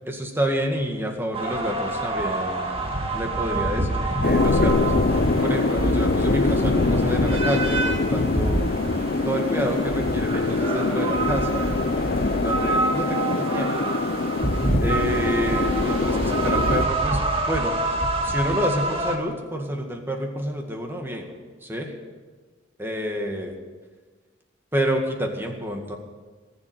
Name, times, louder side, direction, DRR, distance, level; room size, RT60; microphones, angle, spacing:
voice 1, 0.0-4.9 5.4-8.6 9.2-13.7 14.8-17.2 17.5-17.8 18.2-21.3 21.6-21.9 22.8-23.5 24.7-26.0, equal, 10° right, 2 dB, 2.0 m, -28 dB
sound 1, 1.3-19.2, right 2 dB, 30° right, 1.8 m, -26 dB
sound 2, 4.2-16.8, left 3 dB, 50° left, 0.5 m, -24 dB
19.5 x 7.5 x 9.3 m, 1.4 s
head